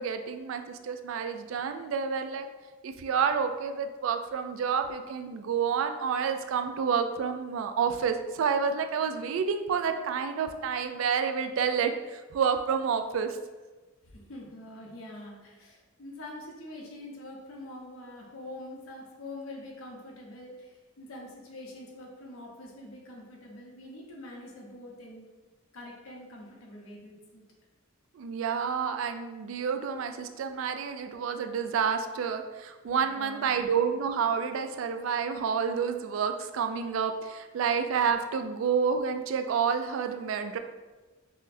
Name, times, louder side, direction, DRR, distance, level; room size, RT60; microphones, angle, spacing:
voice 1, 0.0-2.5 2.8-13.4 28.1-40.6, right 6 dB, 70° right, 7 dB, 0.3 m, -29 dB
voice 2, 14.0-25.3 25.7-27.4 32.9-33.5, left 1 dB, 85° left, -1 dB, 0.8 m, -45 dB
5.6 x 2.1 x 2.6 m, 1.2 s
head